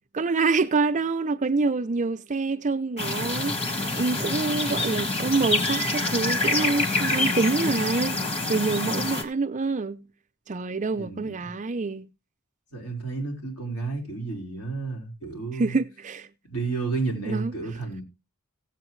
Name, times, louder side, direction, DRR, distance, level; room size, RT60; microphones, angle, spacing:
voice 1, 0.1-8.2 8.5-10.1 10.5-12.1 15.5-16.3 17.3-17.5, right 3 dB, 35° right, 0.5 m, -26 dB
sound 1, 3.0-9.2, left 2 dB, 25° left, 1.6 m, -26 dB
voice 2, 11.0-11.5 12.7-15.8 16.4-18.0, right 3 dB, 75° left, 4.5 m, -31 dB
16.5 x 8.1 x 3.1 m
head